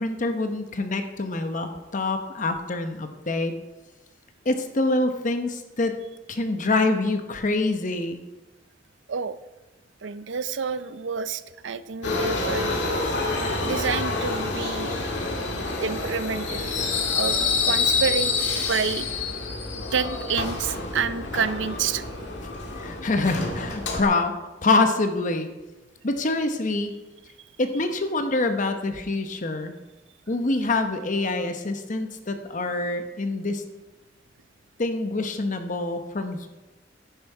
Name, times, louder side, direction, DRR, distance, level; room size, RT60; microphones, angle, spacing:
voice 1, 0.0-3.5 4.4-6.0 6.3-8.2 22.8-24.3 24.6-25.5 26.0-27.0 27.6-29.8 30.3-33.6 34.8-36.5, left 2 dB, 45° left, 7 dB, 0.9 m, -25 dB
voice 2, 10.0-12.7 13.6-14.9 15.8-16.8 17.1-17.4 17.6-19.1 19.9-22.0, right 6 dB, 90° right, 14 dB, 0.6 m, -28 dB
Subway metro underground, 12.0-24.0, left 3 dB, 70° left, 2.1 m, -27 dB
10.5 x 10.5 x 4.5 m, 1.1 s
head